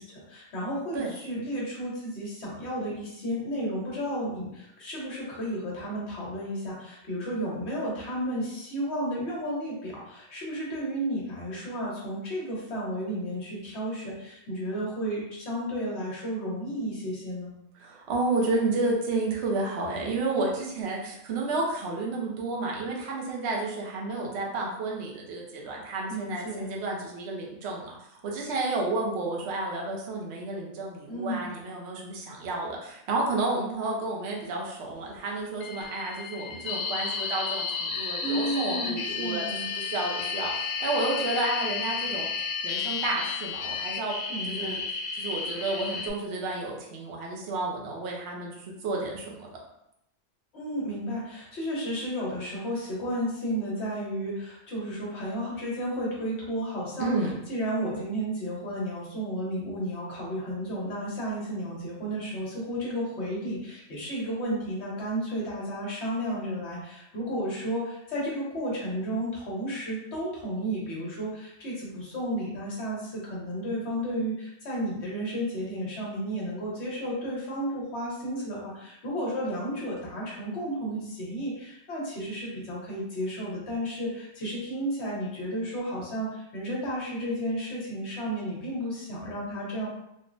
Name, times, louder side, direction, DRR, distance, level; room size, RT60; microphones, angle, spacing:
voice 1, 0.0-17.5 25.6-26.7 31.1-31.5 38.2-39.6 44.3-44.8 50.5-57.1 57.5-89.9, equal, 60° left, -5 dB, 1.2 m, -32 dB
voice 2, 17.8-27.9 28.2-42.3 42.6-44.1 44.5-44.8 45.2-49.5 57.0-57.3, right 3 dB, 65° right, -1 dB, 0.9 m, -31 dB
sound 1, 35.6-46.1, left 5 dB, 80° left, 0.4 m, -32 dB
3.5 x 2.1 x 2.5 m, 0.81 s
omnidirectional pair, 1.3 m